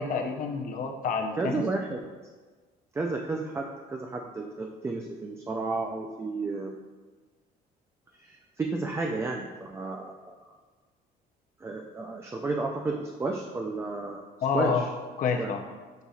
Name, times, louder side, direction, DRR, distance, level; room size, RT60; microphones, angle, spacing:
voice 1, 0.0-1.6 14.4-14.8 15.2-15.6, left 5 dB, 55° left, 4 dB, 0.6 m, -28 dB
voice 2, 1.4-2.0 2.9-6.8 8.2-10.3 11.6-14.3 14.5-14.8 15.4-15.5, right 3 dB, 15° right, 1 dB, 0.3 m, -32 dB
7.7 x 2.7 x 2.4 m, 1.4 s
cardioid pair, 110°, 17 cm